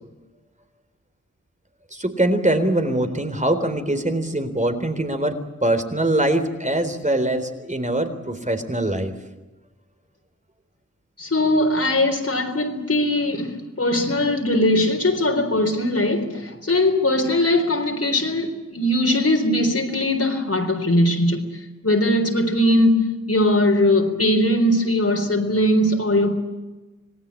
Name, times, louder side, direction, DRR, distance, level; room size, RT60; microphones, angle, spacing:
voice 1, 1.9-9.1, right 1 dB, 25° right, 3.9 m, -23 dB
voice 2, 11.2-26.3, left 1 dB, 55° left, 4.0 m, -20 dB
27.0 x 19.0 x 8.6 m
wide cardioid pair, 60°, 30 cm